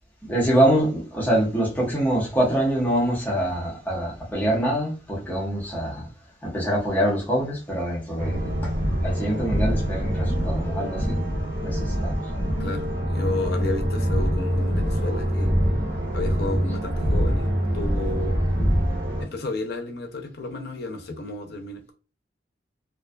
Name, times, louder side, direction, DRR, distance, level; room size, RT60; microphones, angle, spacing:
voice 1, 0.2-6.1 6.4-8.7 9.0-11.2 11.6-12.2, right 1 dB, 10° left, 0.8 m, -24 dB
sound 1, 8.2-19.2, equal, 80° right, 0.8 m, -24 dB
voice 2, 12.6-15.5 16.1-18.4 19.2-21.9, left 3 dB, 65° left, 0.5 m, -32 dB
2.5 x 2.3 x 2.2 m
head